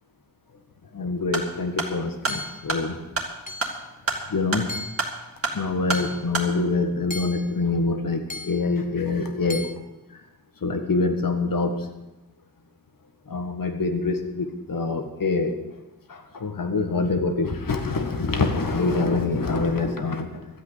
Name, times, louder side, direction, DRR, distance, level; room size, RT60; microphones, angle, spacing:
voice 1, 0.9-3.0 4.3-4.7 5.5-9.7 10.6-11.8 13.3-15.5 16.1-20.5, left 3 dB, 60° left, 6 dB, 1.7 m, -25 dB
sound 1, 1.2-6.5, right 3 dB, 35° right, 2.2 m, -30 dB
Hammer / Chink clink, 2.3-2.7 3.5-3.9 4.7-5.1 5.9-6.3 7.1-7.6 8.3-8.7 9.5-9.7, left 2 dB, 20° left, 0.8 m, -36 dB
13.0 x 8.2 x 8.2 m, 1.0 s
wide cardioid pair, 90°, 37 cm